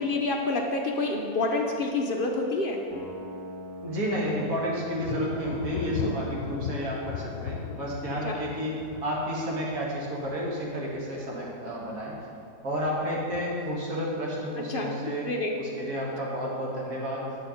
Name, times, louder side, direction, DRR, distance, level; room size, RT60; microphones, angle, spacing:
voice 1, 0.0-2.8 8.2-8.4 14.6-15.6, left 2 dB, 50° left, 1 dB, 0.7 m, -28 dB
sound 1, 2.9-8.9, left 1 dB, 15° right, 1.6 m, -46 dB
voice 2, 3.8-12.1 12.6-15.3 15.6-17.2, equal, 55° right, -4 dB, 2.1 m, -31 dB
Thunder, 5.0-11.5 11.8-12.4 12.9-13.7, left 6 dB, 80° left, 1.2 m, -38 dB
9.0 x 6.8 x 5.1 m, 2.5 s
omnidirectional pair, 1.8 m